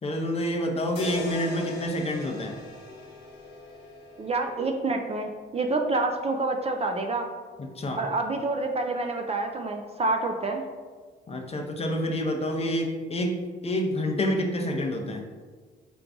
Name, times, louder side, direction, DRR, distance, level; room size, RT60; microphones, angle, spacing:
voice 1, 0.0-2.6 7.6-8.0 11.3-13.3 13.6-15.2, equal, 30° left, 2 dB, 0.6 m, -28 dB
sound 1, 1.0-5.0, left 2 dB, 60° left, 1.0 m, -39 dB
voice 2, 4.2-7.3 8.0-10.6, right 2 dB, 30° right, 4 dB, 0.4 m, -28 dB
4.6 x 2.5 x 3.5 m, 1.5 s
cardioid pair, 90°, 20 cm